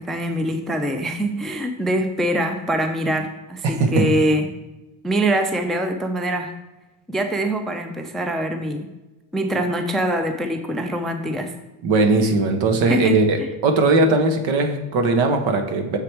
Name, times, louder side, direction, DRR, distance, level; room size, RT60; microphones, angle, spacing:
voice 1, 0.0-4.5 5.0-6.5 7.1-8.9 9.3-11.5 12.9-13.5, right 1 dB, ahead, 6 dB, 0.4 m, -24 dB
voice 2, 3.6-4.1 11.8-16.0, right 3 dB, 70° right, 6 dB, 1.2 m, -19 dB
7.0 x 4.9 x 4.5 m, 1.1 s
cardioid pair, 110°, 48 cm